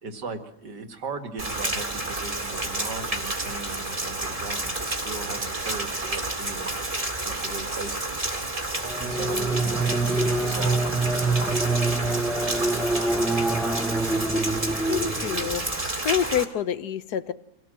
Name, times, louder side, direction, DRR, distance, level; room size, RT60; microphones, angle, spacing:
voice 1, 0.0-6.8 7.0-8.2 9.0-11.3 11.7-13.5, right 4 dB, 80° right, 7 dB, 2.7 m, -38 dB
Rain, 1.4-16.4, right 2 dB, 20° right, 2.3 m, -30 dB
sound 1, 8.8-15.7, right 2 dB, ahead, 0.7 m, -26 dB
voice 2, 14.9-17.3, left 9 dB, 70° left, 14 dB, 1.6 m, -28 dB
25.5 x 17.0 x 7.8 m, 0.83 s
omnidirectional pair, 1.8 m